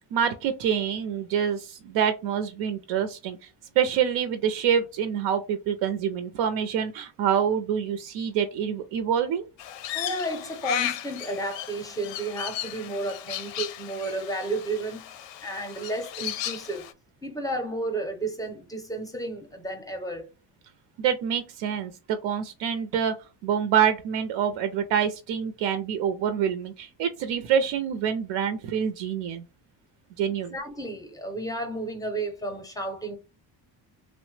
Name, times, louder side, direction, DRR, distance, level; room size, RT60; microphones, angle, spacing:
voice 1, 0.1-3.5 3.8-9.5 21.0-29.4 30.2-30.5, right 8 dB, 85° right, 0.5 m, -26 dB
Crow, 9.6-16.9, left 12 dB, 85° left, 0.6 m, -35 dB
voice 2, 9.9-15.0 15.4-16.9 17.2-20.3 30.5-33.1, right 2 dB, 10° left, 0.5 m, -32 dB
3.1 x 2.0 x 3.1 m
cardioid pair, 165°, 43 cm